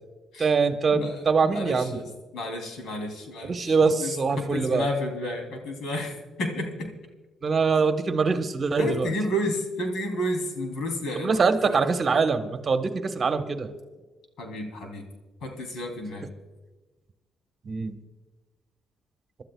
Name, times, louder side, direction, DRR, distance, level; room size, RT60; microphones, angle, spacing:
voice 1, 0.4-2.0 3.4-4.9 7.4-9.1 11.2-13.7 17.6-17.9, right 4 dB, 40° right, 7 dB, 1.2 m, -23 dB
voice 2, 0.9-3.7 4.0-6.9 8.8-11.8 14.4-15.0 15.4-16.3, equal, 75° left, 3 dB, 3.1 m, -31 dB
27.5 x 12.0 x 2.3 m, 1.2 s
cardioid pair, 90°, 0 cm